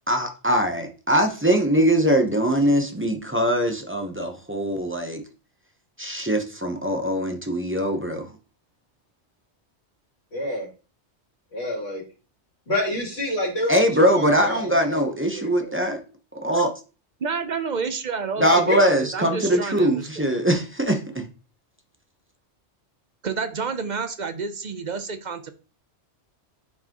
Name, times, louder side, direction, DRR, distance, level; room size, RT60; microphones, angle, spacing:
voice 1, 0.1-5.2 6.0-8.3 13.7-16.0 16.4-16.7 18.4-21.3, equal, 10° right, 4 dB, 0.7 m, -22 dB
voice 2, 10.3-10.7 11.5-12.0 12.7-15.7 18.4-18.8 19.5-19.6, equal, 65° left, -3 dB, 3.1 m, -28 dB
voice 3, 17.2-20.4 23.2-25.5, right 5 dB, 45° right, 10 dB, 0.7 m, -30 dB
9.4 x 4.7 x 2.9 m, 0.35 s
omnidirectional pair, 1.2 m